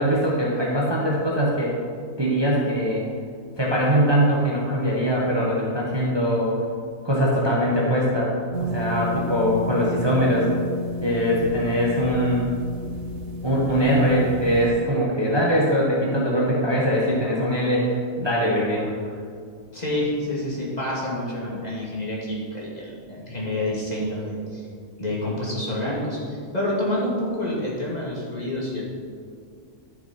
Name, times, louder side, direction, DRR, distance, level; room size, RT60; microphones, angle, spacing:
voice 1, 0.0-1.7 2.2-3.0 3.6-6.6 7.0-8.3 8.6-10.5 11.0-12.5 13.4-18.9, equal, 20° right, -5 dB, 1.3 m, -22 dB
sound 1, 8.5-14.7, left 1 dB, 60° right, 1.2 m, -31 dB
voice 2, 19.7-22.7 23.1-24.6 25.0-28.8, left 1 dB, 30° left, -6 dB, 2.6 m, -28 dB
12.5 x 6.8 x 4.4 m, 2.2 s
omnidirectional pair, 1.4 m